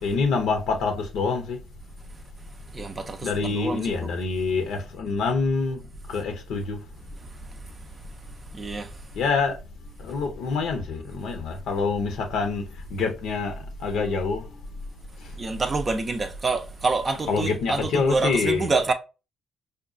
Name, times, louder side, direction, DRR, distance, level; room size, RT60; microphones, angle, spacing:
voice 1, 0.0-1.6 3.2-5.8 6.1-6.8 9.1-9.6 10.0-12.6 12.9-13.5 13.8-14.6 15.2-15.3 17.3-18.7, left 4 dB, 80° left, 0.7 m, -26 dB
voice 2, 2.7-4.1 8.6-8.9 15.4-18.9, right 3 dB, 35° right, 0.4 m, -27 dB
5.0 x 2.3 x 2.4 m
cardioid pair, 90°, 0 cm